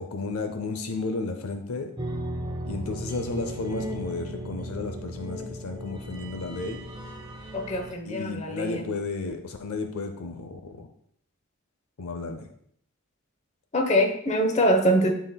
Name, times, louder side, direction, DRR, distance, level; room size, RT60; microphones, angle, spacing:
voice 1, 0.0-1.9 2.6-6.8 8.0-10.9 12.0-12.5, left 3 dB, 75° left, 6 dB, 0.6 m, -33 dB
sound 1, 2.0-7.9, right 1 dB, 20° right, 0.7 m, -36 dB
voice 2, 7.5-8.8 13.7-15.1, equal, 30° left, 4 dB, 0.9 m, -23 dB
11.0 x 4.1 x 2.2 m, 0.68 s
head